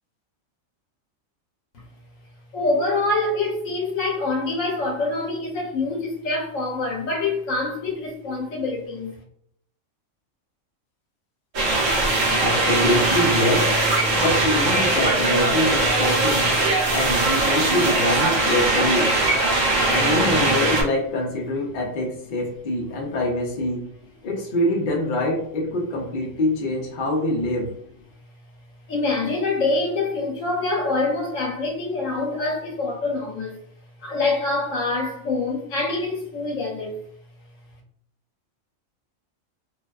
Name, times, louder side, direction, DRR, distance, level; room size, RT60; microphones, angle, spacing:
voice 1, 2.5-9.1 28.9-33.6 34.0-37.0, left 3 dB, 80° left, 1.1 m, -25 dB
sound 1, 11.5-20.8, right 2 dB, 80° right, 1.0 m, -20 dB
voice 2, 12.4-13.7 14.1-16.5 16.9-19.1 19.9-23.9 24.2-27.7, left 1 dB, 50° left, 0.6 m, -24 dB
2.5 x 2.2 x 2.2 m
omnidirectional pair, 1.3 m